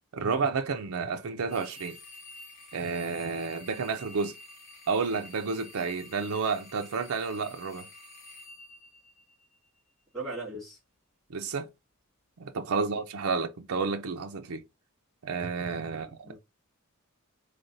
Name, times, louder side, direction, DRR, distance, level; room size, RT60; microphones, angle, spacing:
voice 1, 0.1-2.0 2.7-4.4 4.9-7.9 11.3-11.7 12.4-14.6 15.2-16.1, right 4 dB, 75° right, 0.5 m, -31 dB
sound 1, 1.5-9.7, left 2 dB, 55° left, 2.2 m, -49 dB
voice 2, 10.1-10.8 12.7-13.0 15.9-16.4, right 2 dB, ahead, 2.4 m, -39 dB
3.9 x 3.3 x 2.6 m
head